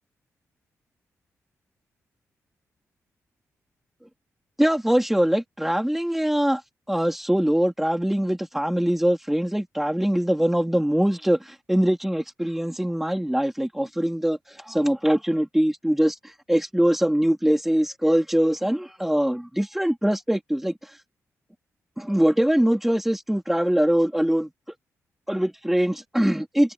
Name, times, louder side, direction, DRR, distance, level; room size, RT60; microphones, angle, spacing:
voice 1, 4.6-6.6 6.9-20.7 22.0-24.5 25.3-26.7, equal, 5° right, 3.7 m, -23 dB
wide cardioid pair, 140°, 6 cm